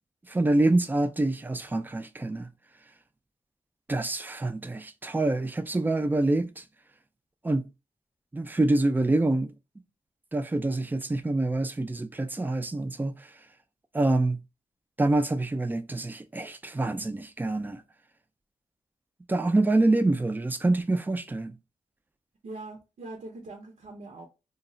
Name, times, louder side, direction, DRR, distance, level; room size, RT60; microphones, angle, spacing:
voice 1, 0.3-2.5 3.9-6.6 7.4-7.6 8.3-9.5 10.3-13.3 13.9-14.4 15.0-17.8 19.3-21.5, right 2 dB, 15° right, 0.4 m, -26 dB
voice 2, 22.4-24.3, right 2 dB, 65° right, 0.6 m, -42 dB
2.3 x 2.0 x 3.7 m
cardioid pair, 55°, 13 cm